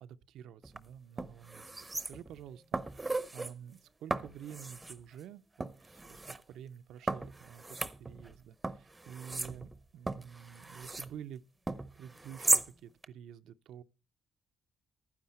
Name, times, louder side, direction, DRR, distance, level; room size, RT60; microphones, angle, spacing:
voice 1, 0.0-11.4 12.0-13.8, right 9 dB, 80° right, 0.5 m, -49 dB
sound 1, 0.6-0.8 1.2-2.4 2.7-3.5 4.1-5.0 5.6-6.4 7.1-8.4 8.6-11.1 11.7-12.7 13.0-13.1, right 2 dB, 15° right, 0.7 m, -36 dB
11.5 x 9.5 x 4.3 m
cardioid pair, 90°, 0 cm